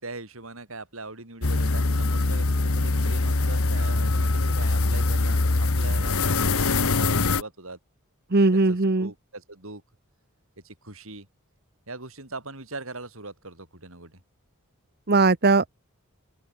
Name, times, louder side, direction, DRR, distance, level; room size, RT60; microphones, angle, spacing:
voice 1, 0.0-7.8 8.7-9.8 10.6-11.3 11.9-14.2, right 3 dB, 70° right, 6.5 m, -41 dB
sound 1, 1.4-7.4, left 3 dB, 80° left, 1.4 m, -23 dB
voice 2, 8.3-9.1 15.1-15.7, right 3 dB, 50° right, 1.1 m, -19 dB
open air
head